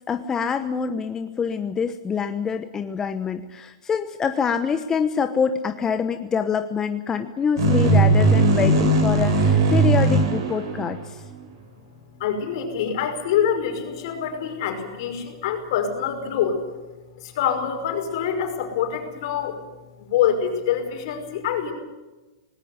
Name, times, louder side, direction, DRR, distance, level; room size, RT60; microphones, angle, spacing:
voice 1, 0.1-11.2, left 6 dB, 20° left, 8 dB, 1.0 m, -25 dB
sound 1, 7.6-11.3, right 2 dB, 65° right, 7.5 m, -18 dB
voice 2, 12.2-16.6 17.2-19.6 20.0-21.7, left 8 dB, 60° left, 5 dB, 5.5 m, -25 dB
19.5 x 18.0 x 9.6 m, 1.1 s
hypercardioid pair, 125°, 3 cm